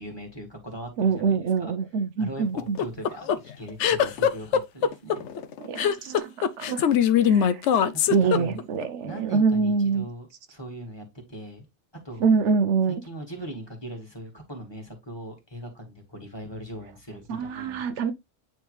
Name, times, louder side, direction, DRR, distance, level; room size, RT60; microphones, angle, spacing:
voice 1, 0.0-1.7 2.2-5.3 7.9-8.6 9.0-11.7 12.0-12.3 13.0-18.1, right 1 dB, 20° left, 2.0 m, -40 dB
voice 2, 1.0-2.8 5.6-6.9 7.3-7.6 8.1-10.1 12.2-13.0 17.3-18.1, right 5 dB, 75° right, 1.0 m, -25 dB
sound 1, 2.6-8.8, left 8 dB, 70° left, 0.9 m, -22 dB
9.3 x 3.3 x 3.2 m
omnidirectional pair, 1.3 m